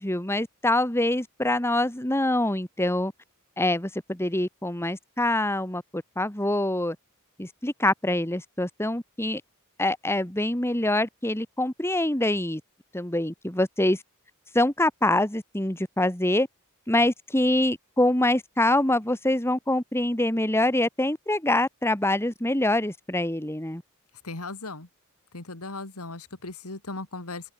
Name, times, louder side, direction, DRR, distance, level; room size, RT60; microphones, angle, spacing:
voice 1, 0.0-3.1 3.6-7.0 7.4-9.4 9.8-12.6 12.9-14.0 14.5-16.5 16.9-23.8, left 1 dB, 10° left, 2.0 m, -25 dB
voice 2, 24.2-24.9 25.3-27.5, left 3 dB, 85° left, 2.9 m, -37 dB
open air
head